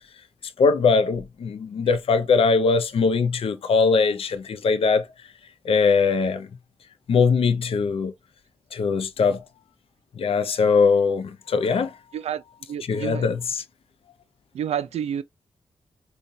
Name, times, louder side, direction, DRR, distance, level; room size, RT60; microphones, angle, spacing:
voice 1, 0.6-5.1 5.6-6.5 7.1-8.1 8.7-9.4 10.2-11.9 12.8-13.6, left 5 dB, 65° left, 0.5 m, -21 dB
voice 2, 12.7-13.3 14.5-15.2, right 9 dB, 85° right, 0.4 m, -29 dB
3.8 x 2.3 x 2.6 m
cardioid pair, 80°, 11 cm